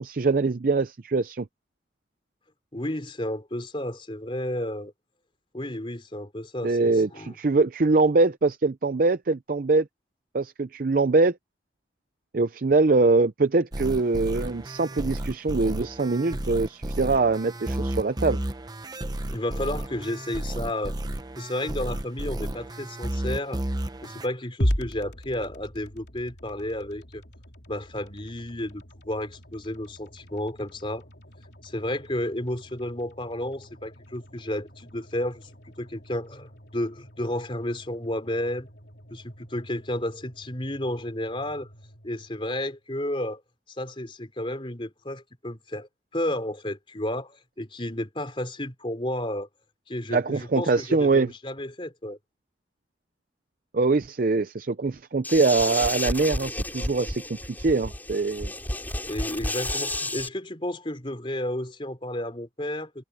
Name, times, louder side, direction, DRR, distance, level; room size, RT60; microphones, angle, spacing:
voice 1, 0.0-1.5 6.6-9.9 10.3-11.4 12.3-18.4 50.1-51.3 53.7-58.5, right 3 dB, 50° right, 0.5 m, -23 dB
voice 2, 2.7-4.9 5.5-7.4 19.3-20.9 21.4-23.6 24.0-27.2 27.7-31.0 31.6-35.5 35.8-38.7 39.1-41.7 42.0-43.4 43.8-49.5 49.9-52.2 59.1-63.0, left 1 dB, 30° left, 3.5 m, -32 dB
sound 1, 13.7-24.3, right 1 dB, 20° right, 0.8 m, -32 dB
sound 2, 24.6-42.8, equal, 70° left, 3.6 m, -38 dB
sound 3, 55.2-60.3, left 1 dB, 10° left, 5.9 m, -31 dB
head